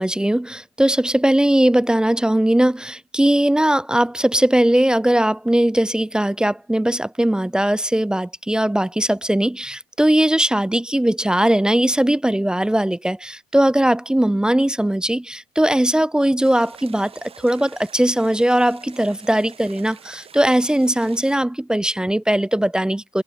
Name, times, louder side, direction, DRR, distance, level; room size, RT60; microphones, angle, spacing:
voice 1, 0.0-23.2, right 1 dB, 5° right, 0.5 m, -19 dB
sound 1, 16.4-21.4, right 7 dB, 35° right, 4.0 m, -45 dB
hypercardioid pair, 80°, 18 cm